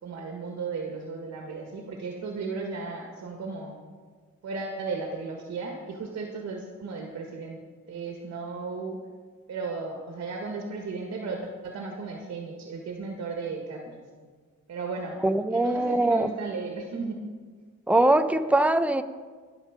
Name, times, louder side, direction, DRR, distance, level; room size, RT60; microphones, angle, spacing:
voice 1, 0.0-3.8 4.4-7.6 7.9-9.0 9.5-14.0 14.7-15.2 15.5-17.2, right 4 dB, 55° right, 1 dB, 1.8 m, -35 dB
voice 2, 15.2-16.3 17.9-19.0, right 1 dB, 5° right, 9 dB, 0.7 m, -22 dB
20.5 x 7.3 x 5.2 m, 1.6 s
cardioid pair, 90°, 30 cm